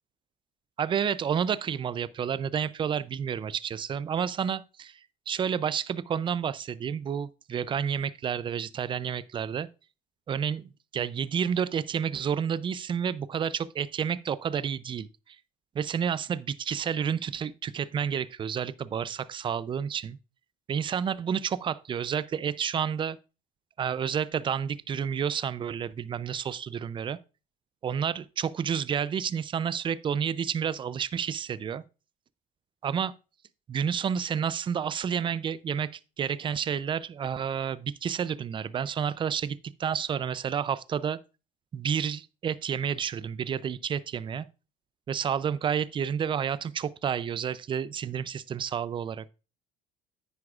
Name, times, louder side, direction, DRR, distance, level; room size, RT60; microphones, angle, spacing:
voice 1, 0.8-5.0 5.3-9.7 10.3-15.4 15.7-20.2 20.7-23.2 23.8-27.2 27.8-31.8 32.8-33.1 33.7-41.2 41.7-44.5 45.1-49.3, right 8 dB, 30° right, 0.4 m, -30 dB
9.7 x 9.6 x 2.4 m
cardioid pair, 125°, 17 cm